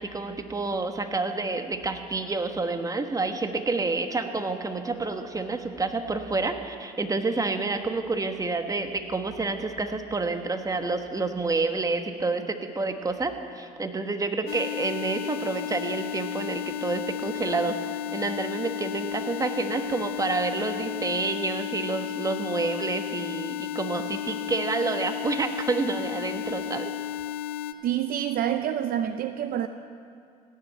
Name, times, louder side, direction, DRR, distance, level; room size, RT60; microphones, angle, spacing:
voice 1, 0.0-26.9, right 3 dB, 20° right, 7 dB, 1.3 m, -29 dB
sound 1, 14.5-27.7, left 10 dB, 90° left, 0.6 m, -33 dB
voice 2, 27.8-29.7, right 10 dB, 55° right, 10 dB, 0.6 m, -27 dB
17.0 x 7.3 x 9.1 m, 2.4 s
supercardioid pair, 80°, 18 cm